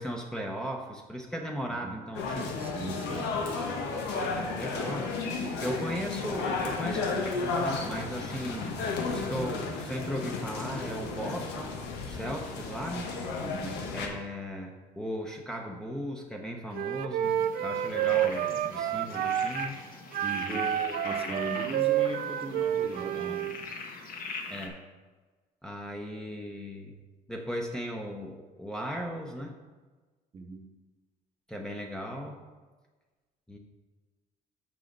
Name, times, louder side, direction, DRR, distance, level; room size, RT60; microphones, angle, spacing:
voice 1, 0.0-2.5 4.2-5.1 5.6-8.7 9.1-13.1 13.9-17.3 17.6-19.8 20.5-21.4 24.5-24.8 25.6-26.9 27.3-29.6 31.5-32.4 33.5-33.6, equal, 5° left, -1 dB, 0.8 m, -37 dB
sound 1, 2.1-14.1, left 4 dB, 90° left, 1.1 m, -33 dB
voice 2, 2.6-3.3 4.8-5.0 5.8-6.0 13.4-13.8 20.2-20.7 21.0-23.5 30.3-30.7, right 3 dB, 35° right, 3 dB, 1.0 m, -39 dB
Wind instrument woodwind instrument, 16.7-19.7 20.1-23.5, right 11 dB, 60° right, 0.5 m, -29 dB
sound 2, 17.2-24.7, left 4 dB, 60° left, 1.2 m, -42 dB
6.2 x 4.9 x 6.6 m, 1.3 s
cardioid pair, 110°, 17 cm